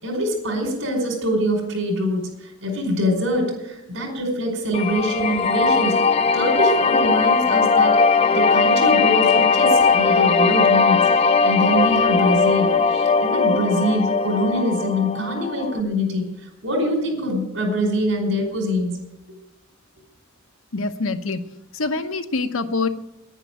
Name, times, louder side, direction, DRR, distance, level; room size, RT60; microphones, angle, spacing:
voice 1, 0.0-5.9 6.3-19.0, equal, 75° right, 2 dB, 5.0 m, -24 dB
sound 1, 4.7-15.8, left 4 dB, 30° left, 0.4 m, -19 dB
voice 2, 20.7-22.9, left 3 dB, 80° left, 8 dB, 1.0 m, -25 dB
10.5 x 9.9 x 9.2 m, 0.95 s
head